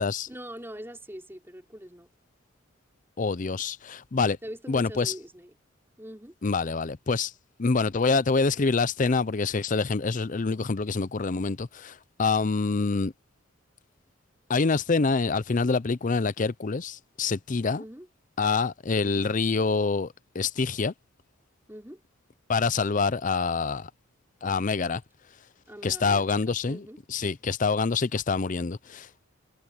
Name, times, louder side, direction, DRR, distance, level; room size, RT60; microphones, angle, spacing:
voice 1, 0.3-2.1 4.4-5.6 6.0-6.3 17.8-18.1 21.7-22.0 25.7-27.0, equal, 10° right, 4.2 m, -43 dB
voice 2, 3.2-4.4 4.7-5.1 6.4-7.3 7.6-13.1 14.5-17.8 18.4-20.9 22.5-23.9 24.4-25.0 25.8-29.1, left 4 dB, 40° left, 0.5 m, -26 dB
head